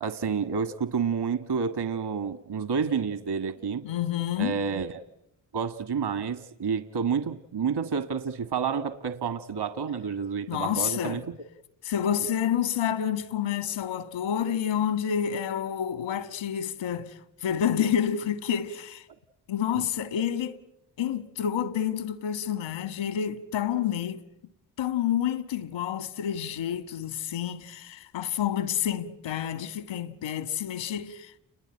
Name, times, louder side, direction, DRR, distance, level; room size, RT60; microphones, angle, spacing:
voice 1, 0.0-3.9 4.4-5.0 5.5-11.2 19.8-19.9, right 6 dB, 60° right, 1.8 m, -29 dB
voice 2, 3.8-4.6 10.5-11.2 11.8-17.1 17.4-19.0 19.5-20.6 21.0-24.2 24.8-31.4, left 9 dB, 80° left, 1.8 m, -29 dB
30.0 x 21.5 x 8.9 m
hypercardioid pair, 40°, 45 cm